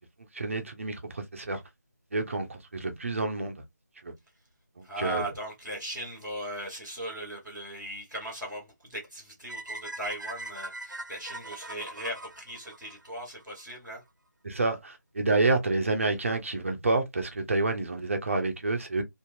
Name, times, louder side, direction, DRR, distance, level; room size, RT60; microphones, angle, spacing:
voice 1, 0.3-1.6 2.1-3.6 4.0-4.1 4.8-5.2 14.4-19.0, right 3 dB, 45° right, 0.8 m, -28 dB
voice 2, 4.8-14.0, right 1 dB, ahead, 0.4 m, -38 dB
sound 1, 9.5-13.6, right 2 dB, 85° right, 0.7 m, -41 dB
2.8 x 2.6 x 2.4 m
figure-of-eight pair, 160°, 10 cm